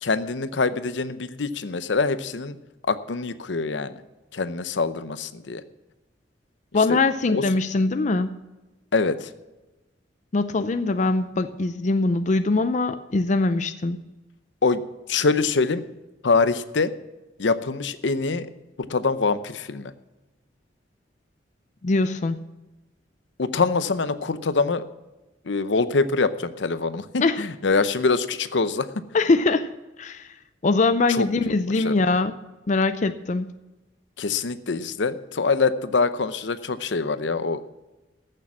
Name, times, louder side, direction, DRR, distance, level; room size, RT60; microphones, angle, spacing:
voice 1, 0.0-2.6 2.9-4.0 4.3-5.6 6.9-7.0 7.3-7.4 8.9-9.3 14.6-14.8 15.1-15.8 16.2-16.9 17.4-18.5 18.9-19.9 23.4-24.8 25.5-28.9 31.1-31.3 31.7-31.9 34.2-37.6, left 4 dB, 75° left, 13 dB, 0.7 m, -24 dB
voice 2, 6.7-8.4 10.3-14.0 21.8-22.4 27.2-27.4 29.1-29.7 30.0-30.3 30.6-32.3 32.7-33.5, left 3 dB, 40° left, 11 dB, 0.5 m, -22 dB
14.5 x 6.8 x 7.4 m, 1.1 s
head